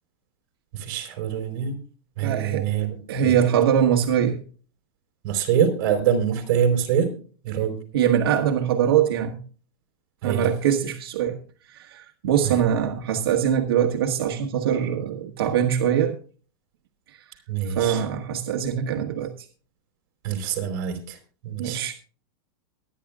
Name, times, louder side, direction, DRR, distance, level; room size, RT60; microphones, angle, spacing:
voice 1, 0.7-1.8 2.2-3.3 5.2-7.1 7.4-7.7 10.2-10.5 12.4-12.5 17.5-18.0 20.2-21.9, right 8 dB, 40° right, 4.3 m, -25 dB
voice 2, 2.2-2.6 3.1-4.4 7.9-9.4 10.2-11.3 11.7-16.2 17.1-17.2 17.7-19.5 21.6-21.9, right 9 dB, 75° right, 1.4 m, -23 dB
23.5 x 10.0 x 2.4 m
supercardioid pair, 180°, 12 cm